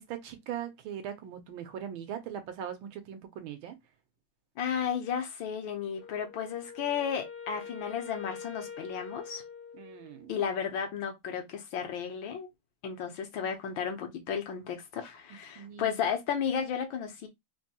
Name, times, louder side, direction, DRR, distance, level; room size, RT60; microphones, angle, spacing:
voice 1, 0.0-3.8 9.8-10.4 15.6-15.9, right 9 dB, 85° right, 1.6 m, -40 dB
voice 2, 4.6-9.4 10.3-12.5 12.8-17.3, left 7 dB, 75° left, 1.5 m, -33 dB
Wind instrument woodwind instrument, 5.9-10.3, left 6 dB, 60° left, 0.8 m, -45 dB
4.0 x 2.6 x 2.8 m
omnidirectional pair, 2.2 m